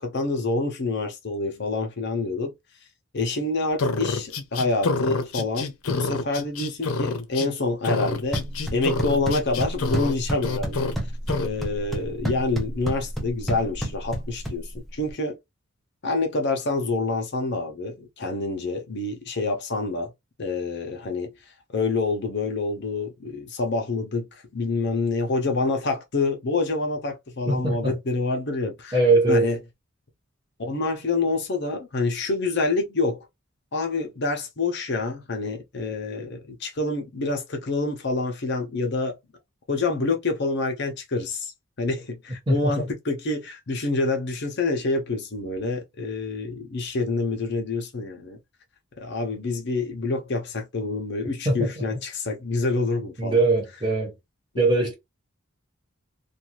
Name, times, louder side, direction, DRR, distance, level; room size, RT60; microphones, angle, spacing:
voice 1, 0.0-2.5 3.1-8.4 8.7-10.9 11.4-15.4 16.0-20.1 20.4-21.3 21.7-29.0 29.3-29.6 30.6-33.3 33.7-39.2 39.7-41.5 41.8-48.4 49.0-53.4, left 3 dB, 55° left, 0.7 m, -27 dB
sound 1, 3.8-7.5 7.8-10.1 10.4-10.9 11.3-11.5, left 3 dB, 90° left, 0.6 m, -27 dB
sound 2, 8.1-15.1, right 1 dB, ahead, 0.7 m, -31 dB
voice 2, 27.5-27.9 28.9-29.5 42.5-42.9 51.4-51.8 53.2-54.1 54.6-54.9, right 2 dB, 20° right, 1.2 m, -21 dB
2.6 x 2.3 x 2.9 m
head